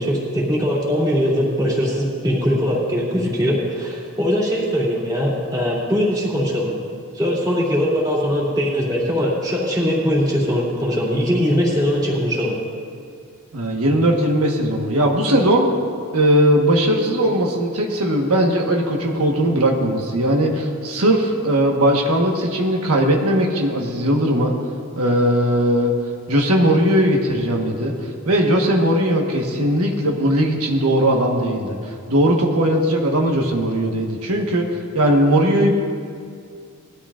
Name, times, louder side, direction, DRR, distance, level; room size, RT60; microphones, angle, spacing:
voice 1, 0.0-6.7 7.1-12.6, equal, 20° right, -5 dB, 2.9 m, -21 dB
voice 2, 13.5-15.7 16.1-24.5 24.9-25.9 26.3-31.8 32.1-34.7 34.9-35.7, right 1 dB, 85° right, 0 dB, 1.4 m, -18 dB
19.5 x 13.0 x 2.5 m, 2.2 s
head